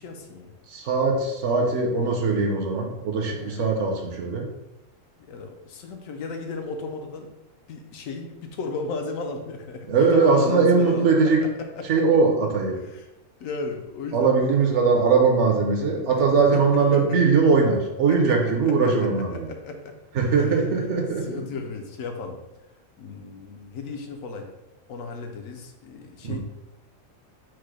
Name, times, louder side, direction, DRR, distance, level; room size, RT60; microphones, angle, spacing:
voice 1, 0.0-0.5 3.4-3.7 5.3-7.3 7.7-11.1 11.8-12.0 12.8-13.1 13.4-14.3 16.2-17.2 18.1-19.9 20.3-20.5 21.2-22.4 23.0-24.5 24.9-26.4, left 4 dB, 80° left, 4 dB, 1.0 m, -35 dB
voice 2, 0.7-4.5 9.9-11.5 11.9-12.8 14.1-19.5 20.1-21.4 26.2-26.4, right 4 dB, 65° right, 2 dB, 1.0 m, -21 dB
4.7 x 2.1 x 4.7 m, 0.97 s
omnidirectional pair, 1.4 m